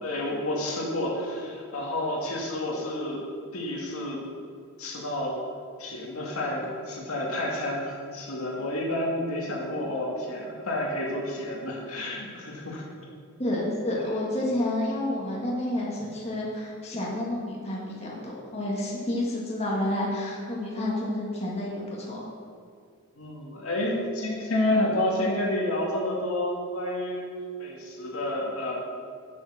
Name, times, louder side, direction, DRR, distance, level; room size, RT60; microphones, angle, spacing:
voice 1, 0.0-3.2 3.5-4.2 4.8-5.4 5.8-12.8 13.9-14.0 23.2-27.3 27.6-28.8, left 1 dB, 80° left, -2 dB, 2.1 m, -30 dB
voice 2, 13.4-22.2, left 1 dB, 30° left, -4 dB, 1.8 m, -30 dB
7.7 x 7.2 x 6.4 m, 2.1 s
head